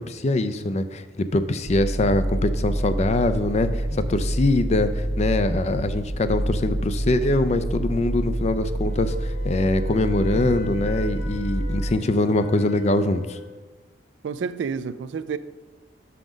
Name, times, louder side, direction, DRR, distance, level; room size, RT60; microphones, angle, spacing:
voice 1, 0.0-13.4, left 2 dB, 40° left, 0.4 m, -23 dB
sound 1, 1.6-11.9, right 1 dB, 65° right, 0.9 m, -27 dB
Wind instrument woodwind instrument, 8.8-13.6, left 3 dB, 70° left, 1.1 m, -40 dB
voice 2, 14.2-15.4, right 6 dB, 85° right, 0.3 m, -29 dB
5.7 x 5.1 x 6.2 m
head